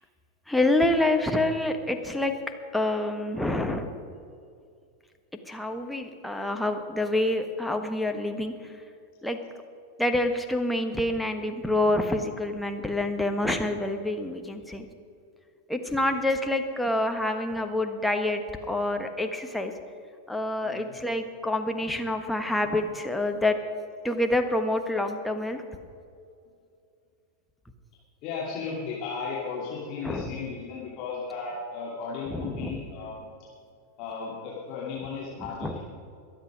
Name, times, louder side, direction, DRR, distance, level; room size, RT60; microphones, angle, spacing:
voice 1, 0.5-2.3 2.7-4.0 5.5-8.5 9.2-9.4 10.0-14.9 15.7-18.4 18.7-19.7 20.3-23.6 24.0-25.6 30.0-30.4 32.3-32.8 35.6-35.8, left 1 dB, 5° left, 4 dB, 1.2 m, -27 dB
voice 2, 20.6-20.9 28.2-33.3 34.0-35.8, left 5 dB, 40° left, -6 dB, 2.8 m, -35 dB
22.5 x 8.1 x 5.2 m, 2.4 s
figure-of-eight pair, 90°, 0 cm